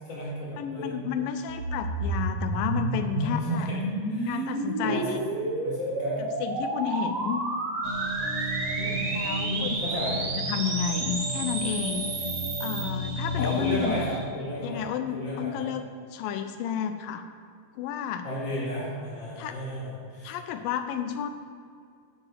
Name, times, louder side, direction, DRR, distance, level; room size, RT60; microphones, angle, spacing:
voice 1, 0.0-1.0 3.2-3.8 4.1-4.4 4.8-6.2 8.8-9.0 9.5-10.2 13.4-14.8 15.1-15.7 18.2-20.4, equal, 35° left, -12 dB, 2.7 m, -34 dB
voice 2, 0.6-3.7 4.3-5.2 6.2-7.4 9.1-9.8 10.5-12.3 12.6-14.0 14.6-15.9 16.1-17.2 17.8-18.3 19.4-19.6 20.2-21.3, left 8 dB, 85° left, 8 dB, 2.3 m, -31 dB
sound 1, 1.5-12.8, right 2 dB, 55° right, 1.9 m, -31 dB
sound 2, 7.8-14.2, equal, 35° right, 1.5 m, -33 dB
9.9 x 6.6 x 6.2 m, 2.2 s
omnidirectional pair, 4.0 m